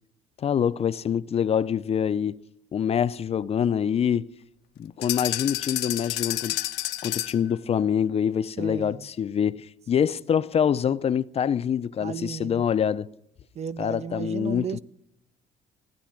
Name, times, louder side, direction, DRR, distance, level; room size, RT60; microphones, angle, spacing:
voice 1, 0.4-2.4 2.7-4.3 4.8-6.6 7.0-13.1 13.8-14.8, left 8 dB, 35° left, 0.5 m, -25 dB
sound 1, 5.0-7.5, left 15 dB, 85° left, 0.7 m, -30 dB
voice 2, 8.6-9.1 12.0-12.7 13.6-14.8, right 8 dB, 40° right, 0.5 m, -34 dB
16.0 x 9.4 x 8.9 m
cardioid pair, 110°, 17 cm